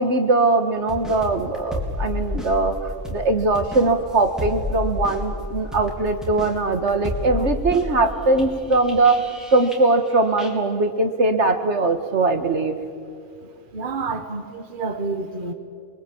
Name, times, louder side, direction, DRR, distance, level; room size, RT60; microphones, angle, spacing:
voice 1, 0.0-9.2 9.5-12.8, right 3 dB, 60° right, 6 dB, 1.9 m, -21 dB
sound 1, 0.9-10.1 10.4-10.5, left 1 dB, ahead, 4.0 m, -31 dB
voice 2, 13.7-15.5, right 4 dB, 40° right, 7 dB, 1.4 m, -29 dB
28.0 x 22.0 x 8.7 m, 2.4 s
omnidirectional pair, 1.4 m